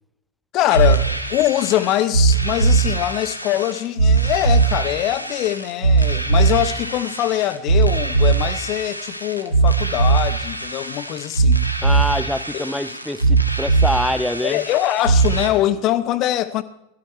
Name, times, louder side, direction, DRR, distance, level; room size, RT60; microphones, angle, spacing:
voice 1, 0.5-11.7 12.5-13.0 14.4-16.6, left 13 dB, 35° left, 1.1 m, -23 dB
sound 1, 0.7-15.5, right 4 dB, 90° left, 1.7 m, -20 dB
voice 2, 11.8-14.6, left 1 dB, 5° left, 0.7 m, -25 dB
18.0 x 13.5 x 4.6 m
figure-of-eight pair, 90°, 0 cm